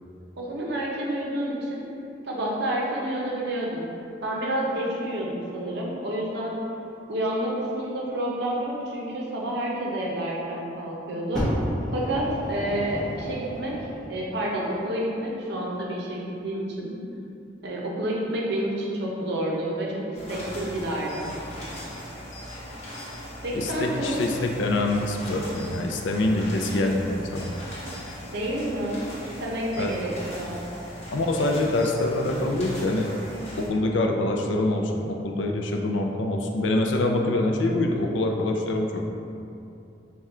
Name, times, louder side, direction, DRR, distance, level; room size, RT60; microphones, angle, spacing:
voice 1, 0.4-1.8 2.2-3.9 4.2-6.6 7.1-11.5 11.9-13.7 14.1-16.9 17.6-21.3 23.4-24.2 28.3-30.6 31.5-31.6, right 1 dB, 60° right, -3 dB, 0.7 m, -29 dB
Fire, 11.3-14.2 15.0-15.1, equal, ahead, 0.9 m, -31 dB
sound 1, 20.1-33.7, equal, 40° left, 0.9 m, -39 dB
voice 2, 23.5-27.5 29.8-29.9 31.1-33.1 33.6-39.0, left 2 dB, 75° left, 2 dB, 0.4 m, -25 dB
3.6 x 2.3 x 4.2 m, 2.7 s
head